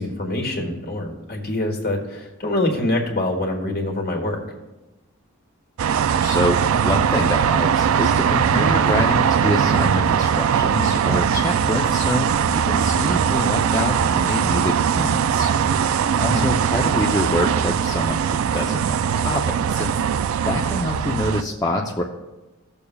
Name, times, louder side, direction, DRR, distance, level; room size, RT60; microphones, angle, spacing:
voice 1, 0.0-4.4 16.2-16.5, left 1 dB, 50° left, 1 dB, 1.7 m, -25 dB
sound 1, 5.8-21.4, right 7 dB, 75° right, 0.3 m, -20 dB
voice 2, 6.2-15.5 16.2-19.9 20.5-22.0, left 1 dB, 15° left, -1 dB, 0.6 m, -26 dB
16.5 x 6.8 x 2.3 m, 1.1 s
head